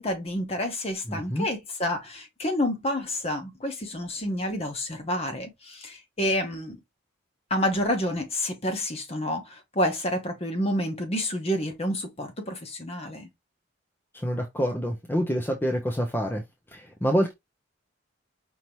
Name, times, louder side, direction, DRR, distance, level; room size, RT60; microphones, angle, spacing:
voice 1, 0.0-6.8 7.5-13.3, left 1 dB, 30° left, 1.0 m, -29 dB
voice 2, 1.1-1.5 14.1-16.4 16.7-17.3, equal, 10° left, 0.6 m, -27 dB
5.4 x 2.9 x 3.0 m
head